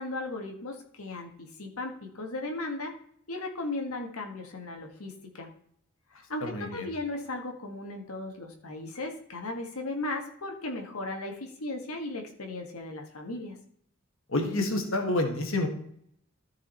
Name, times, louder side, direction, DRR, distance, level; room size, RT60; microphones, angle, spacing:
voice 1, 0.0-2.9 3.3-5.5 6.1-13.6, left 2 dB, 85° left, 2 dB, 1.5 m, -36 dB
voice 2, 6.4-6.9 14.3-15.7, left 2 dB, 65° left, 4 dB, 1.6 m, -28 dB
13.5 x 4.8 x 4.4 m, 0.66 s
head